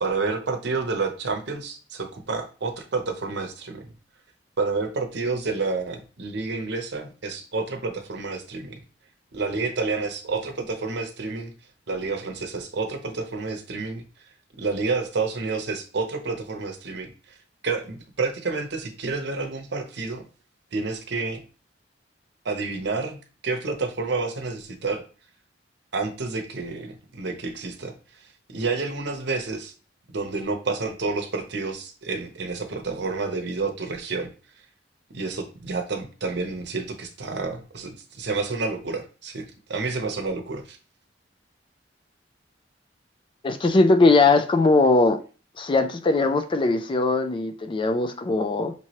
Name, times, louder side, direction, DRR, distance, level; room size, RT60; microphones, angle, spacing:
voice 1, 0.0-3.9 4.6-8.8 9.3-11.5 11.9-14.0 14.6-17.4 17.6-20.2 20.7-21.4 22.4-25.0 25.9-27.9 28.5-29.7 30.1-34.3 35.1-40.8, right 4 dB, 65° right, 0.8 m, -29 dB
voice 2, 43.4-45.2 45.6-48.7, left 3 dB, 25° left, 0.4 m, -20 dB
5.6 x 3.0 x 2.8 m
head